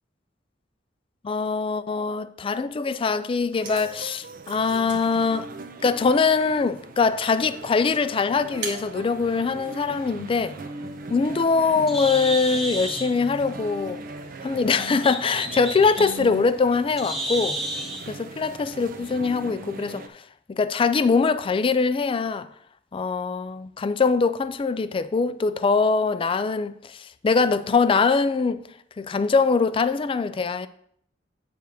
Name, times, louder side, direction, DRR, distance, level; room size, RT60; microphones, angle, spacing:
voice 1, 1.2-5.5 5.8-10.6 11.1-14.0 14.4-17.6 18.1-20.2 20.5-22.5 22.9-28.6 29.0-30.7, left 4 dB, 30° left, 0.3 m, -23 dB
sound 1, 3.3-10.1, right 4 dB, 65° right, 1.3 m, -44 dB
sound 2, 3.6-20.1, right 3 dB, 50° right, 0.5 m, -39 dB
Bird, 10.8-18.1, right 1 dB, ahead, 1.1 m, -33 dB
8.0 x 3.4 x 6.2 m
head